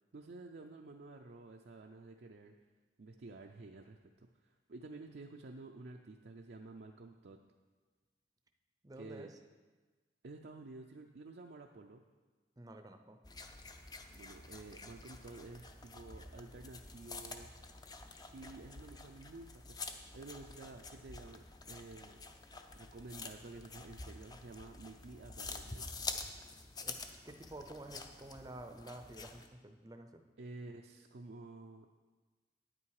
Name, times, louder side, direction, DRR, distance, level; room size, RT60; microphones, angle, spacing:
voice 1, 0.1-2.5 3.0-7.4 9.0-9.3 10.2-12.0 14.1-17.5 18.2-22.2 22.7-25.9 30.4-31.9, right 3 dB, 65° right, 2 dB, 0.5 m, -51 dB
voice 2, 8.8-9.3 12.6-13.2 26.8-27.0 27.2-30.2, right 1 dB, 20° right, 6 dB, 0.6 m, -50 dB
sound 1, 13.2-29.5, left 4 dB, 20° left, 0.5 m, -48 dB
9.3 x 8.7 x 4.8 m, 1.4 s
head